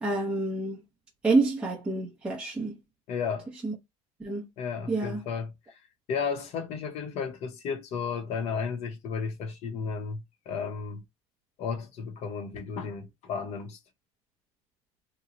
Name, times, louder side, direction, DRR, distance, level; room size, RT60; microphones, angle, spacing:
voice 1, 0.0-0.8 1.2-2.7 3.6-3.7 4.2-4.4 4.9-5.2, right 3 dB, 5° right, 0.7 m, -27 dB
voice 2, 3.1-3.5 4.6-5.5 6.1-10.2 10.5-11.0 11.6-13.8, left 5 dB, 45° left, 0.8 m, -33 dB
2.9 x 2.1 x 3.7 m
cardioid pair, 165°, 16 cm